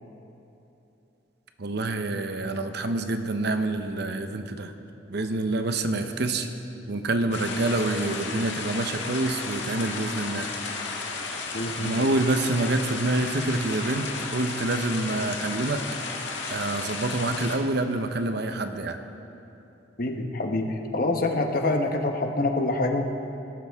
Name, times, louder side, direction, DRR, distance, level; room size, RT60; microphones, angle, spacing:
voice 1, 1.6-4.7 5.1-6.5 6.9-10.5 11.8-15.9 16.5-19.0, right 2 dB, 60° right, 7 dB, 0.8 m, -27 dB
sound 1, 7.3-17.6, left 4 dB, 70° left, 1.6 m, -33 dB
voice 2, 11.5-12.0 20.0-23.0, left 2 dB, 50° left, 4 dB, 1.1 m, -26 dB
20.0 x 12.0 x 3.6 m, 2.9 s
head